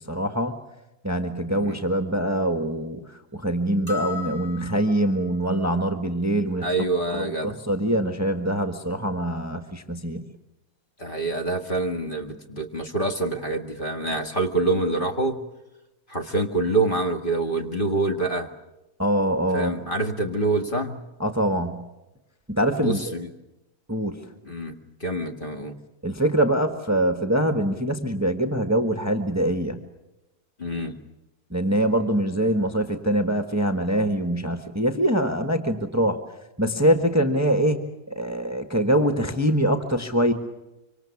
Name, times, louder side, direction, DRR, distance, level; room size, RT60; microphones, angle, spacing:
voice 1, 0.1-0.6 1.0-3.0 3.3-6.7 7.1-10.2 19.0-19.7 21.2-21.8 22.5-23.1 23.9-24.2 26.0-29.8 31.5-36.2 36.6-37.8 38.1-40.3, right 1 dB, 10° right, 5 dB, 1.4 m, -24 dB
voice 2, 1.5-1.8 6.6-7.6 11.0-15.4 16.1-18.5 19.5-21.0 22.7-23.3 24.4-25.8 30.6-30.9, right 2 dB, 30° left, 4 dB, 2.0 m, -26 dB
sound 1, 3.9-5.2, left 6 dB, 10° left, 7.2 m, -35 dB
25.5 x 25.0 x 7.2 m, 0.99 s
omnidirectional pair, 1.7 m